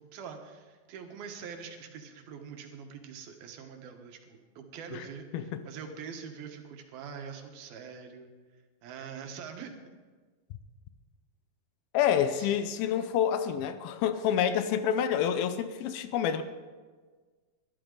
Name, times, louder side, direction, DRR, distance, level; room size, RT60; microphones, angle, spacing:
voice 1, 0.0-8.3 8.8-9.8 12.3-12.6, right 6 dB, 75° right, 4 dB, 3.2 m, -44 dB
voice 2, 11.9-16.4, left 9 dB, 80° left, 10 dB, 2.6 m, -28 dB
20.5 x 12.0 x 3.9 m, 1.4 s
omnidirectional pair, 4.4 m